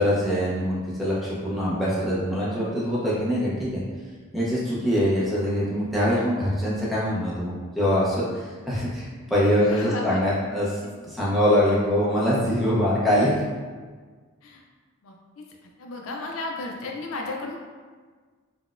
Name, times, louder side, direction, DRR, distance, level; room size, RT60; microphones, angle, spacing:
voice 1, 0.0-3.8 4.3-13.4, equal, ahead, -9 dB, 0.6 m, -23 dB
voice 2, 9.7-10.2 10.5-10.6 14.4-14.6 15.0-15.1 15.6-17.6, left 2 dB, 65° left, 0 dB, 0.4 m, -34 dB
3.9 x 2.1 x 2.4 m, 1.5 s
head